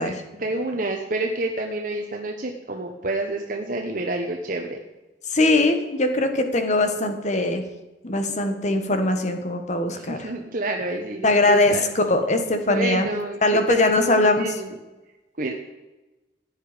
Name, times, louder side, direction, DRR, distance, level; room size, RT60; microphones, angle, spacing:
voice 1, 0.0-4.8 9.9-11.8 12.4-14.7 15.4-15.5, right 2 dB, 50° right, 2 dB, 1.1 m, -29 dB
voice 2, 5.3-7.6 8.0-10.3 11.2-13.1 13.4-14.5, left 2 dB, 40° left, 7 dB, 1.5 m, -21 dB
15.5 x 10.0 x 5.1 m, 1.1 s
head